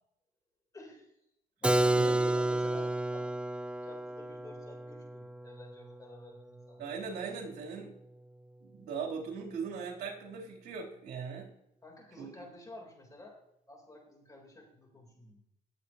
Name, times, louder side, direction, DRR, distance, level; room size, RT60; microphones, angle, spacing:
voice 1, 0.7-1.1 1.6-3.3 3.8-6.9 11.8-13.4 13.7-15.4, left 2 dB, 20° left, 0 dB, 3.8 m, -50 dB
Keyboard (musical), 1.6-7.3, right 1 dB, 5° right, 0.5 m, -31 dB
voice 2, 1.9-2.4 6.8-7.9 8.6-11.5 12.2-12.3, right 5 dB, 70° right, -3 dB, 3.4 m, -39 dB
19.0 x 7.8 x 3.0 m, 0.80 s
cardioid pair, 110°, 17 cm